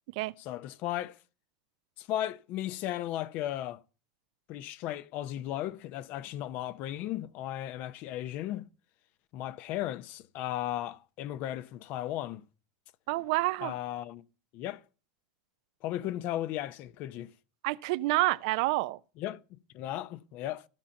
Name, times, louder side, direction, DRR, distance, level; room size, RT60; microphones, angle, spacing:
voice 1, 0.4-1.2 2.0-3.8 4.5-8.7 9.3-12.4 13.6-14.2 14.5-14.8 15.8-17.3 19.2-20.7, left 13 dB, 50° left, 0.7 m, -36 dB
voice 2, 13.1-13.7 17.6-19.0, right 20 dB, 65° right, 0.5 m, -28 dB
15.0 x 5.8 x 5.4 m
supercardioid pair, 120°, 4 cm